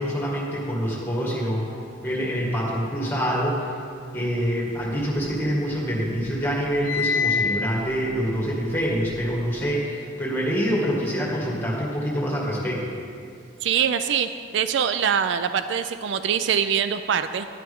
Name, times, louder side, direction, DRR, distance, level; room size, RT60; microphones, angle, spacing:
voice 1, 0.0-1.7 2.0-3.8 4.1-12.9, equal, 10° left, -4 dB, 1.8 m, -26 dB
sound 1, 4.8-5.9 6.2-9.6, left 5 dB, 70° left, 0.6 m, -29 dB
voice 2, 13.6-17.5, right 8 dB, 65° right, 11 dB, 0.3 m, -24 dB
10.5 x 10.0 x 3.5 m, 2.4 s
head